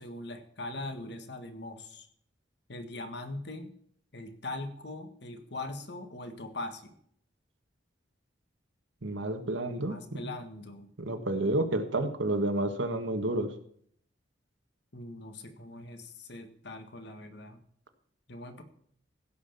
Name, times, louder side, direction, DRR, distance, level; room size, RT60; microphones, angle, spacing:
voice 1, 0.0-2.1 2.7-3.7 4.1-7.0 9.7-10.9 14.9-17.6 18.3-18.6, left 2 dB, 60° left, 7 dB, 1.7 m, -41 dB
voice 2, 9.0-10.0 11.0-13.5, right 1 dB, 85° right, 7 dB, 1.6 m, -30 dB
16.0 x 5.8 x 6.9 m, 0.63 s
head